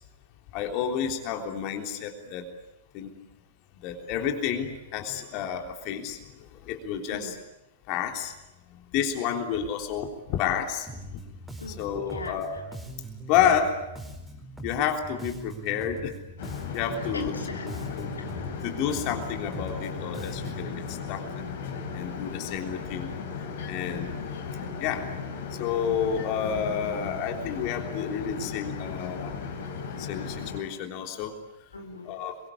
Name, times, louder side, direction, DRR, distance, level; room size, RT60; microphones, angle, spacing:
voice 1, 0.5-2.5 2.9-3.1 3.8-7.3 7.9-8.3 8.7-10.9 11.8-12.6 13.3-13.8 14.6-16.1 16.7-17.3 17.7-18.1 18.6-21.2 21.9-23.2 23.7-24.1 24.8-25.1 25.5-29.3 30.0-31.4 32.1-32.4, left 8 dB, 35° left, 3 dB, 3.5 m, -30 dB
Bass guitar, 10.9-20.8, right 1 dB, 5° right, 4.8 m, -42 dB
voice 2, 11.6-12.7 17.1-18.4 23.0-23.2 31.7-32.2, left 2 dB, 75° left, 2 dB, 3.2 m, -40 dB
sound 1, 16.4-30.6, left 6 dB, 55° left, 4.7 m, -36 dB
27.0 x 23.5 x 8.5 m, 0.94 s
figure-of-eight pair, 100°, 0 cm